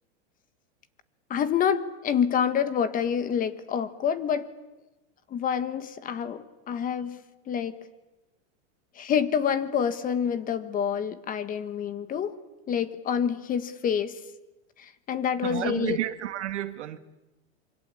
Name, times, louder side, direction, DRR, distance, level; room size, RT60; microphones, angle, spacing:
voice 1, 1.3-4.5 5.3-7.2 7.5-7.8 8.9-12.3 12.7-14.2 14.8-16.0, left 8 dB, 25° left, 13 dB, 1.5 m, -27 dB
voice 2, 15.4-17.0, right 12 dB, 85° right, 11 dB, 1.8 m, -31 dB
26.5 x 24.0 x 8.6 m, 1.0 s
supercardioid pair, 145°, 34 cm